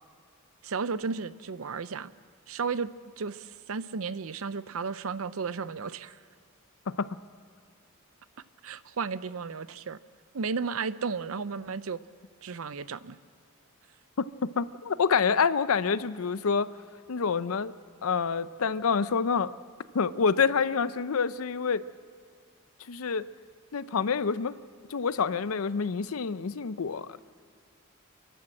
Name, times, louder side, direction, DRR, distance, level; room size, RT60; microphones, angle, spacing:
voice 1, 0.6-2.1 2.5-6.2 8.6-10.0 10.3-12.0 12.4-13.2, right 5 dB, 80° right, 15 dB, 0.6 m, -34 dB
voice 2, 14.2-16.7 17.1-17.7 18.0-19.5 19.9-21.8 22.9-23.3 23.7-24.6 24.9-27.2, left 5 dB, 85° left, 15 dB, 0.6 m, -27 dB
29.5 x 11.5 x 7.7 m, 2.2 s
head